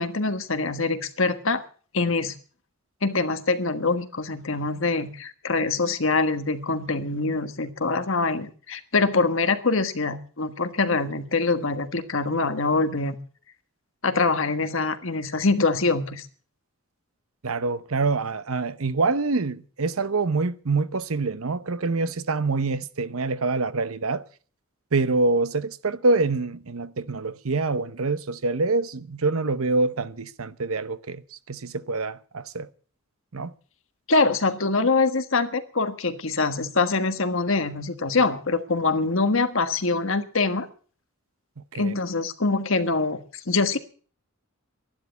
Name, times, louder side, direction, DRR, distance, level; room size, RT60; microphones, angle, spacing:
voice 1, 0.0-1.6 1.9-2.3 3.0-13.2 14.0-16.3 34.1-40.7 41.7-43.8, left 3 dB, 65° left, 1.5 m, -24 dB
voice 2, 17.4-24.2 24.9-31.2 31.5-32.7 33.3-33.5 41.7-41.9, right 3 dB, 80° right, 0.9 m, -25 dB
13.0 x 11.5 x 8.1 m
head